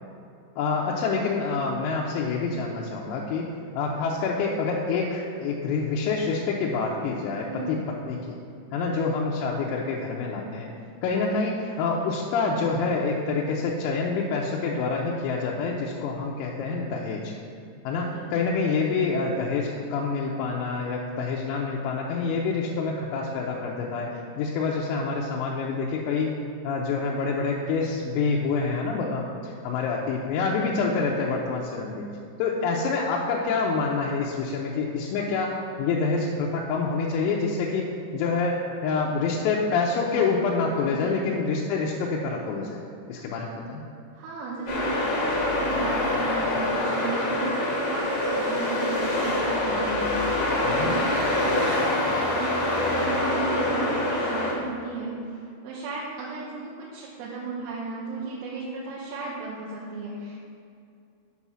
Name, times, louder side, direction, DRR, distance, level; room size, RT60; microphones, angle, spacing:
voice 1, 0.6-3.5 3.8-7.8 8.1-8.4 8.7-10.7 11.0-17.3 17.9-26.3 26.6-32.0 32.4-37.9 38.1-42.8 43.1-43.8 50.7-50.9, left 4 dB, 90° left, -3 dB, 3.5 m, -27 dB
voice 2, 44.1-47.6 47.9-60.5, right 3 dB, 80° right, -6 dB, 3.7 m, -35 dB
sound 1, 44.7-54.5, left 1 dB, 55° left, 1.7 m, -25 dB
9.2 x 5.6 x 6.1 m, 2.5 s
omnidirectional pair, 6.0 m